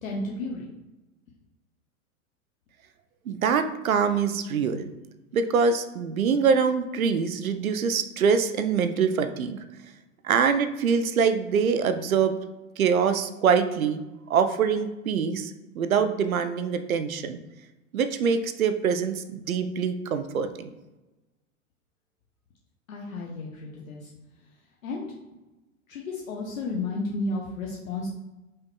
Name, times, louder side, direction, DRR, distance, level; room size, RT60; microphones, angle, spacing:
voice 1, 0.0-0.7 22.9-24.0 24.8-25.1 25.9-28.1, left 2 dB, 75° left, -2 dB, 0.8 m, -32 dB
voice 2, 3.3-4.8 5.3-9.6 10.2-12.4 12.8-14.0 14.3-17.4 17.9-20.7, right 6 dB, 80° right, 9 dB, 0.6 m, -24 dB
5.3 x 3.5 x 2.2 m, 1.1 s
figure-of-eight pair, 95°, 41 cm